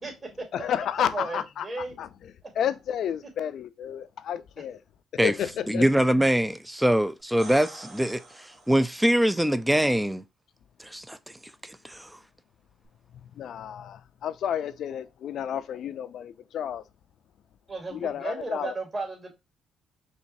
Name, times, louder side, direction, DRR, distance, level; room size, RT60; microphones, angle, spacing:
voice 1, 0.0-0.5 1.0-2.0 17.7-19.3, right 3 dB, 35° right, 2.5 m, -34 dB
voice 2, 0.5-1.7 2.0-2.1 2.6-4.8 5.2-5.9 13.4-16.8 17.9-18.7, left 9 dB, 70° left, 0.5 m, -31 dB
voice 3, 5.7-10.2 10.8-11.2 11.6-12.2, right 1 dB, 5° right, 0.4 m, -24 dB
sound 1, 7.2-9.1 12.8-12.9, right 2 dB, 55° right, 1.7 m, -46 dB
5.2 x 3.1 x 2.6 m
cardioid pair, 90°, 0 cm